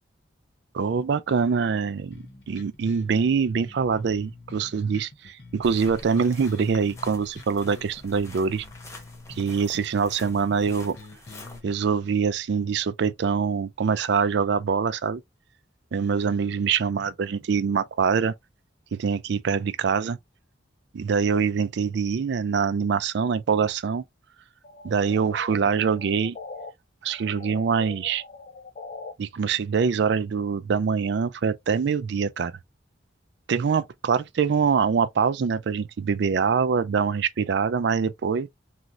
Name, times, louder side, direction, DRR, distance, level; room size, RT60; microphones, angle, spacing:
voice 1, 0.7-8.7 9.4-11.0 11.6-15.2 15.9-18.3 18.9-20.2 20.9-24.0 24.8-26.4 27.0-28.2 29.2-32.5 33.5-38.5, right 6 dB, 60° right, 0.4 m, -24 dB
sound 1, 2.1-11.7, left 2 dB, 60° left, 0.9 m, -46 dB
sound 2, 5.6-11.6, left 2 dB, 15° left, 0.7 m, -46 dB
sound 3, 24.6-26.7 27.1-29.1, left 3 dB, 40° left, 0.4 m, -42 dB
3.1 x 2.5 x 2.6 m
head